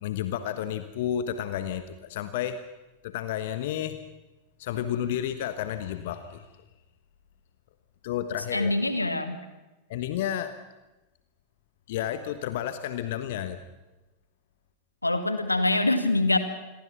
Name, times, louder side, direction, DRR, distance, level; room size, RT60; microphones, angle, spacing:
voice 1, 0.0-2.6 3.0-4.0 4.6-6.5 8.0-8.7 9.9-10.5 11.9-13.6, left 10 dB, 55° left, 11 dB, 1.2 m, -31 dB
voice 2, 8.5-9.4 15.0-16.4, left 2 dB, 85° left, 9 dB, 1.9 m, -24 dB
27.5 x 22.5 x 6.0 m, 1.1 s
figure-of-eight pair, 90°, 0 cm